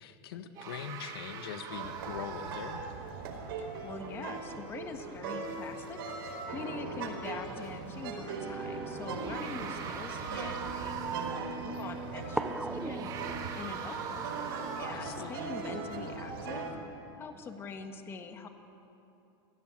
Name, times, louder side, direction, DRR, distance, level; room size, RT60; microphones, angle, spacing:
voice 1, 0.0-2.8 9.4-9.8 14.9-15.3, left 9 dB, 80° left, 9 dB, 1.6 m, -42 dB
sound 1, 0.6-3.3 7.6-7.7 9.0-11.6 12.8-15.2, right 6 dB, 30° right, 2.3 m, -41 dB
sound 2, 1.7-16.7, right 4 dB, 70° right, 4.8 m, -40 dB
voice 2, 3.6-6.0 6.3-13.1 13.5-18.5, left 5 dB, 20° left, 6 dB, 1.4 m, -44 dB
sound 3, 9.2-14.2, right 2 dB, 5° right, 0.4 m, -42 dB
27.5 x 17.5 x 7.8 m, 2.8 s
supercardioid pair, 160°, 13 cm